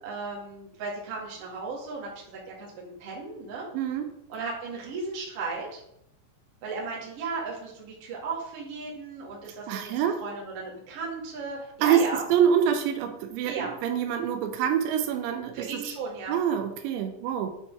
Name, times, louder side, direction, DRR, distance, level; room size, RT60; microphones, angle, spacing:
voice 1, 0.0-3.7 4.3-5.8 6.6-9.9 10.2-12.2 13.4-13.7 15.5-16.4, right 4 dB, 45° right, -4 dB, 2.1 m, -35 dB
voice 2, 3.7-4.1 9.7-10.2 11.8-12.0 12.3-15.8 16.3-17.5, right 9 dB, 85° right, 7 dB, 2.9 m, -26 dB
8.7 x 4.1 x 4.6 m, 0.79 s
omnidirectional pair, 5.2 m